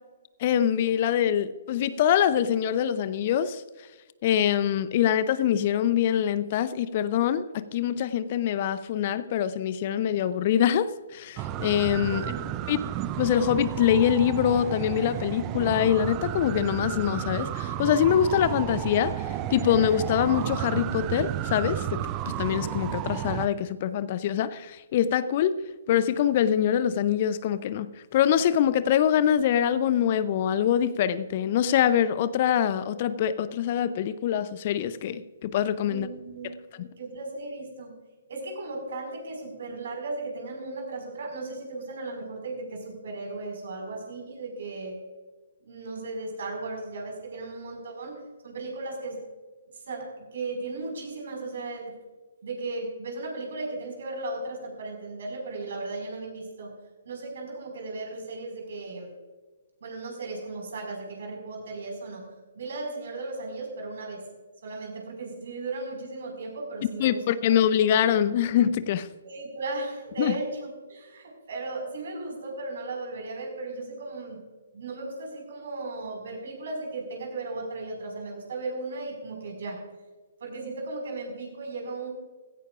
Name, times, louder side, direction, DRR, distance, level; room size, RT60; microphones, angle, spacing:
voice 1, 0.4-3.6 4.2-12.3 12.7-12.8 13.2-25.6 25.9-36.1 36.8-36.9 67.0-69.1 70.2-70.3, left 9 dB, 40° left, 0.6 m, -24 dB
sound 1, 11.4-23.5, right 12 dB, 25° right, 0.5 m, -32 dB
voice 2, 12.1-12.6 35.9-37.9 38.3-45.0 45.6-49.2 49.9-51.9 52.4-56.7 57.0-59.1 59.8-62.2 62.5-64.2 64.6-67.6 69.2-74.4 74.7-79.8 80.4-82.1, right 2 dB, 55° right, 5.1 m, -36 dB
16.5 x 16.0 x 2.5 m
figure-of-eight pair, 130°, 0 cm